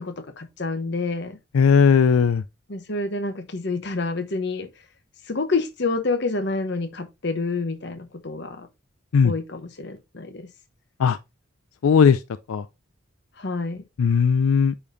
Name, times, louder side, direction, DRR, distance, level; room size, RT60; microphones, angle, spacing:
voice 1, 0.0-1.4 2.7-4.7 5.3-8.7 9.2-10.5 13.4-13.8, left 3 dB, 55° left, 1.0 m, -28 dB
voice 2, 1.5-2.4 9.1-9.3 11.0-11.2 11.8-12.2 12.5-12.6 14.0-14.7, left 6 dB, 90° left, 0.4 m, -17 dB
8.6 x 5.1 x 2.6 m
head